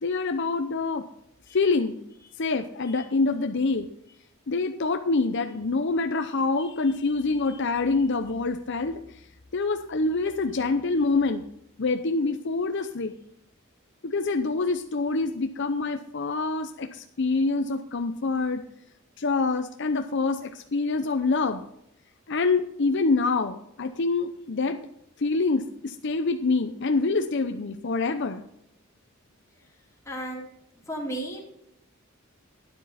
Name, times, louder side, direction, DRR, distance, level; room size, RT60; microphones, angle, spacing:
voice 1, 0.0-1.0 1.5-2.0 2.4-3.9 4.5-9.3 9.5-11.5 11.8-13.1 14.0-18.6 19.2-21.6 22.3-24.8 25.2-28.4, left 3 dB, 60° left, 6 dB, 0.7 m, -26 dB
voice 2, 30.1-30.4 30.8-31.4, right 1 dB, 15° left, -3 dB, 4.0 m, -33 dB
12.0 x 9.9 x 4.1 m, 0.75 s
head